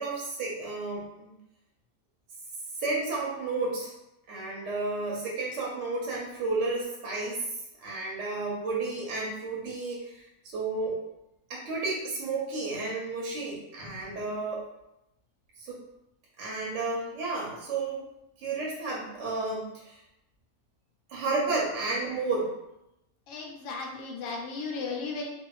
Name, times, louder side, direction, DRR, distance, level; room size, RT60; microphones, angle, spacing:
voice 1, 0.0-1.4 2.8-3.9 4.3-7.4 7.8-10.2 10.5-11.0 11.5-14.6 15.6-15.8 16.4-18.0 18.4-20.0 21.1-22.5, right 3 dB, 65° right, -4 dB, 0.7 m, -32 dB
voice 2, 23.3-25.3, left 4 dB, 70° left, -1 dB, 0.8 m, -35 dB
2.7 x 2.0 x 2.2 m, 0.87 s
omnidirectional pair, 1.8 m